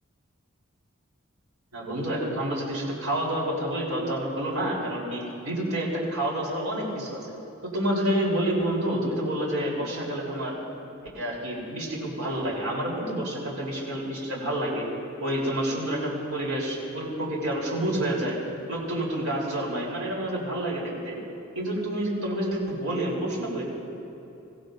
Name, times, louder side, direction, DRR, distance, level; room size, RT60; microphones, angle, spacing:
voice 1, 1.7-7.2 7.6-10.6 11.1-14.9 15.2-18.4 18.7-21.2 21.5-23.6, right 1 dB, 85° right, -4 dB, 3.8 m, -28 dB
24.5 x 16.0 x 2.6 m, 2.9 s
head